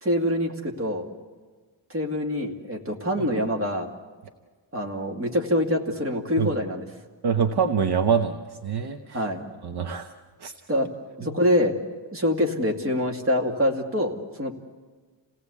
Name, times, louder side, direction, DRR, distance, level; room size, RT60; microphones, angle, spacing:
voice 1, 0.0-1.1 1.9-3.9 4.7-6.9 9.1-9.4 10.7-10.9 11.2-11.7 12.1-14.5, left 1 dB, 30° right, 2 dB, 2.5 m, -25 dB
voice 2, 7.2-9.2 9.6-10.1 10.4-10.5, right 6 dB, 55° right, 5 dB, 1.1 m, -25 dB
28.0 x 18.0 x 8.4 m, 1.5 s
wide cardioid pair, 175°, 46 cm